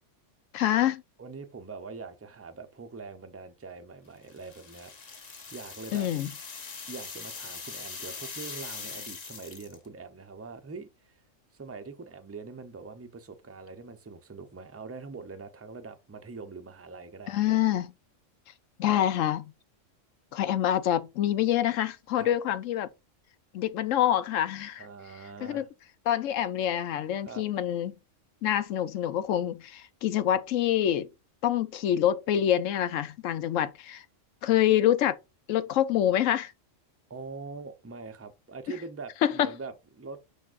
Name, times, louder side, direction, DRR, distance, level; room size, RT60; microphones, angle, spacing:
voice 1, 0.5-1.0 5.9-6.3 17.3-17.9 18.8-19.4 20.3-22.9 23.5-24.9 25.4-25.6 26.1-27.9 28.4-31.1 31.4-34.0 34.4-35.2 35.5-36.5 39.2-39.5, left 11 dB, 80° left, 1.0 m, -26 dB
voice 2, 1.2-6.1 6.9-11.2 11.5-17.6 18.9-19.1 22.2-22.4 24.8-25.7 27.3-27.4 37.1-40.2, right 4 dB, 15° right, 0.5 m, -43 dB
sound 1, 4.3-9.9, left 5 dB, 35° left, 0.8 m, -42 dB
10.5 x 3.6 x 2.5 m
omnidirectional pair, 1.3 m